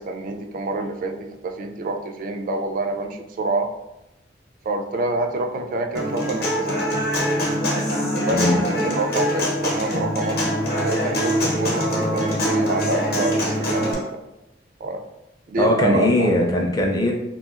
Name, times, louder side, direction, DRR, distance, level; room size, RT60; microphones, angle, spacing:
voice 1, 0.0-3.7 4.6-7.0 8.1-10.4 10.8-14.2 14.8-15.0 15.5-16.3, right 2 dB, 50° right, 4 dB, 0.3 m, -27 dB
Human voice / Acoustic guitar, 5.9-13.9, equal, 60° left, 0.8 m, -23 dB
voice 2, 15.6-17.1, left 1 dB, 20° left, 0 dB, 0.5 m, -20 dB
2.9 x 2.7 x 2.4 m, 0.92 s
head